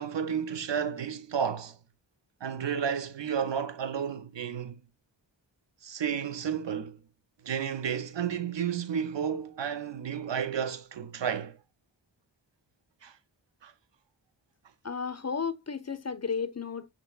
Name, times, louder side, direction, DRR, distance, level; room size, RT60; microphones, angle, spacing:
voice 1, 0.0-1.8 2.4-4.8 5.8-7.0 7.4-11.6 13.0-13.1 13.6-13.7, right 8 dB, 75° right, 0.7 m, -32 dB
voice 2, 14.8-16.9, left 5 dB, 35° left, 0.6 m, -33 dB
6.7 x 2.9 x 2.3 m
wide cardioid pair, 50°, 43 cm